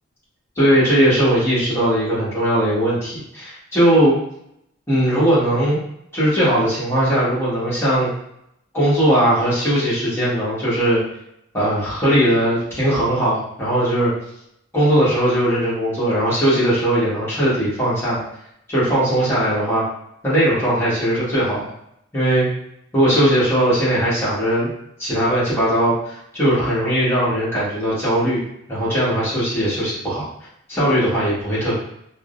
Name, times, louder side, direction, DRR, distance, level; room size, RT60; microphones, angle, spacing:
voice 1, 0.6-4.1 4.9-5.8 6.1-8.1 8.7-11.0 11.5-14.1 14.7-18.2 18.7-19.8 20.2-21.7 22.1-22.5 22.9-24.7 25.0-28.4 28.7-30.3 30.7-31.7, right 1 dB, 10° left, -9 dB, 1.2 m, -19 dB
3.5 x 2.0 x 2.4 m, 0.76 s
head